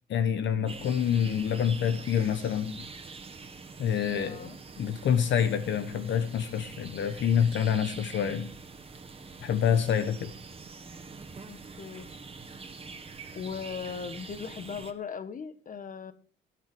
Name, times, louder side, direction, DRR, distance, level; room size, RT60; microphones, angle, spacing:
voice 1, 0.1-2.8 3.8-4.5 4.8-8.5 9.4-10.3, left 8 dB, 70° left, 1.2 m, -27 dB
sound 1, 0.7-14.9, right 4 dB, 30° right, 1.7 m, -45 dB
voice 2, 4.1-4.6 11.5-12.1 13.3-16.1, left 6 dB, 40° left, 1.5 m, -38 dB
17.5 x 7.9 x 6.2 m
cardioid pair, 90°, 20 cm